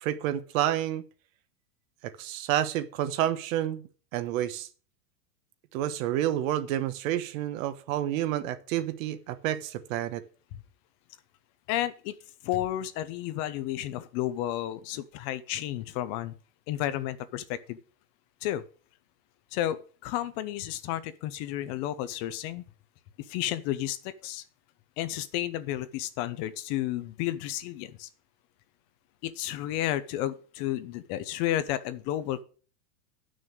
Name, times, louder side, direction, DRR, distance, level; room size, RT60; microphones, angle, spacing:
voice 1, 0.0-1.0 2.0-4.7 5.7-10.2, right 12 dB, 60° right, 1.1 m, -29 dB
voice 2, 11.7-12.2 12.4-16.3 16.7-17.8 18.4-18.6 19.5-19.8 20.0-22.6 23.2-24.4 25.0-28.1 29.2-32.4, left 13 dB, 45° left, 0.9 m, -32 dB
9.0 x 6.4 x 6.3 m
supercardioid pair, 140°, 46 cm